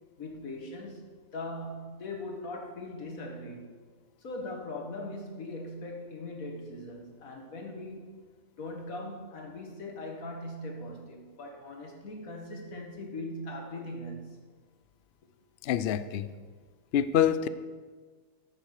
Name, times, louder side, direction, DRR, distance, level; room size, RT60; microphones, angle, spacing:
voice 1, 0.2-1.1 1.3-3.7 4.2-8.1 8.6-14.4, left 1 dB, 60° left, 2 dB, 2.0 m, -40 dB
voice 2, 15.6-16.3 16.9-17.5, left 9 dB, 90° left, 14 dB, 0.5 m, -26 dB
13.5 x 6.4 x 6.6 m, 1.5 s
omnidirectional pair, 1.7 m